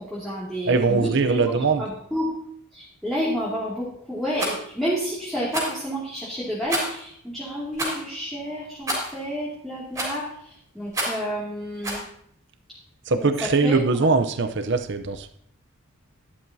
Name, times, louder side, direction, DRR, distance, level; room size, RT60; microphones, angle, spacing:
voice 1, 0.0-2.4 2.7-12.0 13.2-14.1, equal, ahead, -8 dB, 2.4 m, -30 dB
voice 2, 0.7-1.8 13.1-15.3, right 4 dB, 55° right, 9 dB, 0.7 m, -21 dB
Rattle, 4.3-4.6 5.5-5.8 6.7-7.0 7.7-8.0 8.9-9.2 9.9-10.3 10.9-11.3 11.8-12.1, right 1 dB, 15° right, 3.7 m, -28 dB
12.0 x 11.5 x 2.8 m, 0.66 s
head